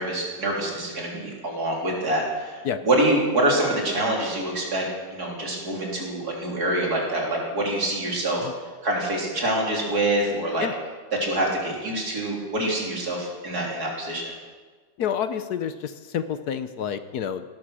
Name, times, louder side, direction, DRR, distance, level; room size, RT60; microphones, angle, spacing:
voice 1, 0.0-4.8 5.1-8.5 8.8-10.7 11.2-14.3, right 1 dB, 60° right, -2 dB, 4.0 m, -25 dB
voice 2, 15.0-17.4, left 8 dB, 65° left, 11 dB, 1.2 m, -28 dB
18.0 x 13.0 x 6.3 m, 1.4 s
omnidirectional pair, 1.9 m